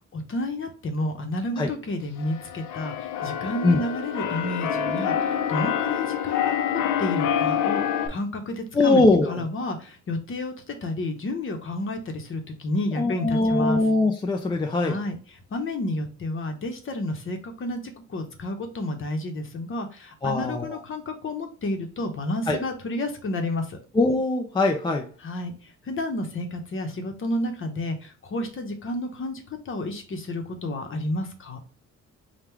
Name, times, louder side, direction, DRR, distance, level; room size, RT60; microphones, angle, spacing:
voice 1, 0.1-13.8 14.7-23.8 25.2-31.6, left 1 dB, 40° left, 0.9 m, -31 dB
Keyboard (musical), 2.2-8.1, left 9 dB, 80° left, 0.7 m, -27 dB
voice 2, 8.7-9.3 13.0-15.0 20.2-20.7 22.5-22.6 23.9-25.1, left 2 dB, 15° left, 0.5 m, -21 dB
3.6 x 2.3 x 4.4 m
cardioid pair, 90°, 30 cm